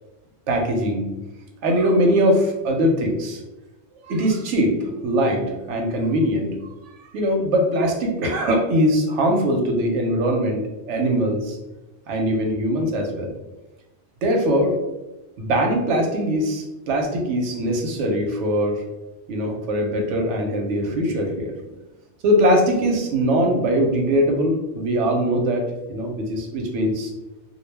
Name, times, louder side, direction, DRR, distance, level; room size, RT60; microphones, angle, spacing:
voice 1, 0.5-1.1 1.6-3.4 4.0-4.8 5.0-6.5 7.1-11.6 12.1-13.3 14.2-14.8 15.4-18.8 19.3-21.5 22.2-27.1, equal, 90° right, 2 dB, 0.9 m, -21 dB
2.2 x 2.1 x 3.2 m, 1.0 s
omnidirectional pair, 1.2 m